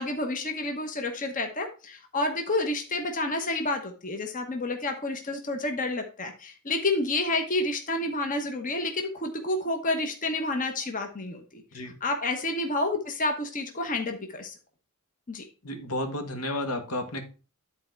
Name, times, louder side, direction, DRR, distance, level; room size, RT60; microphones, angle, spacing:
voice 1, 0.0-11.6 12.0-14.5 15.3-15.4, left 2 dB, 35° left, 1.0 m, -29 dB
voice 2, 15.6-17.2, left 1 dB, 80° left, 1.6 m, -32 dB
10.5 x 4.2 x 4.5 m
head